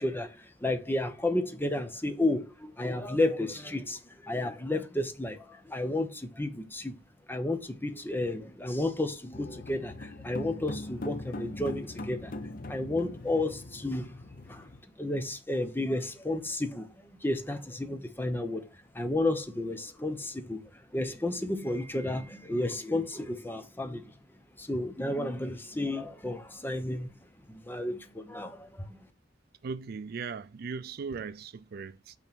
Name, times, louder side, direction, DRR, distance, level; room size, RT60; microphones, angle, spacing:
voice 1, 0.0-6.9 7.3-12.3 12.7-14.1 14.5-14.7 15.0-18.6 18.9-24.1 24.6-27.1 27.5-29.0, left 2 dB, 10° left, 1.0 m, -32 dB
sound 1, 9.3-14.8, left 2 dB, 50° left, 0.7 m, -41 dB
voice 2, 29.6-32.1, right 5 dB, 55° right, 0.4 m, -38 dB
9.0 x 3.4 x 6.0 m
head